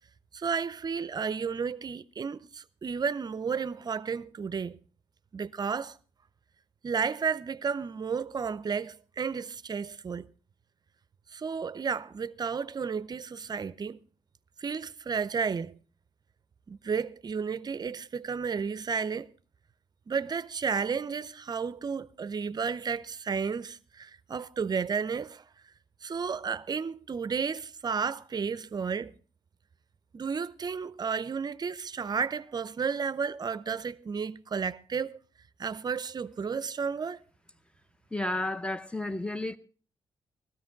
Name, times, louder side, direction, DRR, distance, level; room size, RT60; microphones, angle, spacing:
voice 1, 0.3-4.8 5.3-6.0 6.8-10.3 11.3-14.0 14.6-15.7 16.7-19.3 20.1-25.4 26.0-29.1 30.1-35.2 35.6-37.2, right 6 dB, 40° right, 0.6 m, -32 dB
voice 2, 38.1-39.6, left 2 dB, 10° left, 0.9 m, -32 dB
16.0 x 13.0 x 3.9 m
cardioid pair, 65°, 10 cm